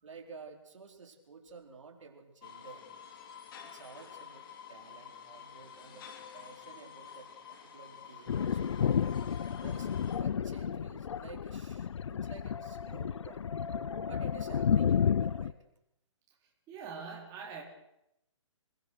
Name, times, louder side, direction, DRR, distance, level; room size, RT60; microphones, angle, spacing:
voice 1, 0.0-2.9 3.6-9.0 9.6-13.5 14.0-15.6, right 4 dB, 70° right, 1 dB, 4.5 m, -52 dB
sound 1, 2.4-10.2, left 7 dB, 45° left, 3.0 m, -50 dB
Thunder, 8.3-15.5, left 7 dB, 65° left, 0.9 m, -31 dB
voice 2, 16.7-17.6, right 5 dB, 20° right, -2 dB, 4.3 m, -43 dB
26.5 x 20.5 x 6.5 m, 0.84 s
hypercardioid pair, 145°, 16 cm